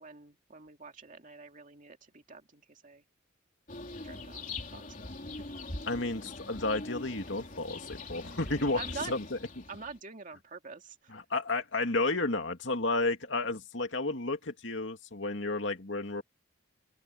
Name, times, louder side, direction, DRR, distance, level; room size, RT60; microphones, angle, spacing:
voice 1, 0.0-3.0 4.0-4.5 4.7-5.1 8.8-9.1 9.7-11.0, right 4 dB, 40° right, 2.4 m, -45 dB
sound 1, 3.7-10.0, left 2 dB, 40° left, 3.5 m, -42 dB
voice 2, 5.9-9.4 11.1-16.2, left 2 dB, 65° left, 2.6 m, -32 dB
open air
head